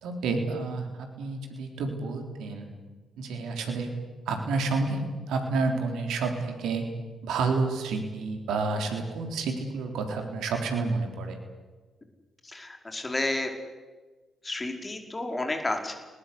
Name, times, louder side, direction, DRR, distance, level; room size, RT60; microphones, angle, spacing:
voice 1, 0.0-2.7 3.2-3.9 4.3-6.8 7.2-11.4, right 3 dB, 70° right, 4 dB, 3.7 m, -29 dB
voice 2, 12.4-13.5 14.4-16.0, left 2 dB, 25° left, 4 dB, 5.1 m, -31 dB
29.0 x 19.5 x 8.4 m, 1.3 s
hypercardioid pair, 45°, 0 cm